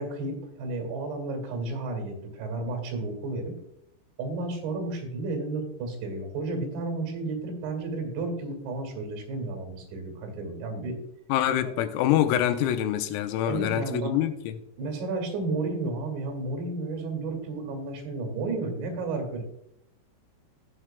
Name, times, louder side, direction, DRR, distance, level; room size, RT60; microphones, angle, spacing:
voice 1, 0.0-3.5 4.2-11.0 13.5-14.1 14.8-19.4, right 3 dB, 65° right, 5 dB, 4.2 m, -32 dB
voice 2, 11.3-14.6, left 11 dB, 90° left, 8 dB, 3.5 m, -25 dB
17.5 x 6.2 x 2.2 m, 0.77 s
omnidirectional pair, 5.9 m